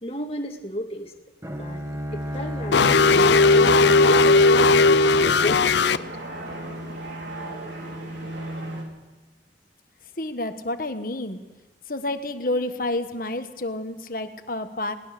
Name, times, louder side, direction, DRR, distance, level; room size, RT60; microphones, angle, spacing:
voice 1, 0.0-1.1 1.5-1.8 2.1-2.9 3.1-6.1, equal, 35° left, 3 dB, 2.0 m, -32 dB
Bowed string instrument, 1.4-6.4, equal, 15° right, 1.4 m, -32 dB
sound 1, 2.1-8.8, right 1 dB, 80° right, 4.6 m, -37 dB
sound 2, 2.7-6.0, left 3 dB, 75° left, 0.6 m, -17 dB
voice 2, 10.2-11.4 11.9-14.9, left 2 dB, 50° left, 8 dB, 1.3 m, -29 dB
21.0 x 19.5 x 6.7 m, 1.2 s
head